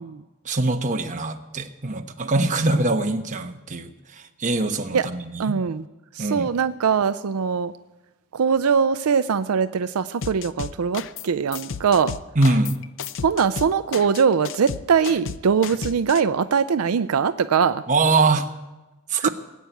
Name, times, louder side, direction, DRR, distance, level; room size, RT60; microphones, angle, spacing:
voice 1, 0.4-5.6 6.2-6.5 12.4-12.8 17.9-18.5 19.1-19.3, right 3 dB, 35° right, 5 dB, 1.1 m, -23 dB
voice 2, 5.4-5.8 6.1-7.7 8.3-12.1 13.2-17.8 19.2-19.3, right 6 dB, 75° right, 12 dB, 0.4 m, -21 dB
sound 1, 10.2-11.3 11.5-16.2, left 6 dB, 60° left, 0.5 m, -33 dB
19.0 x 8.3 x 9.0 m, 1.1 s
head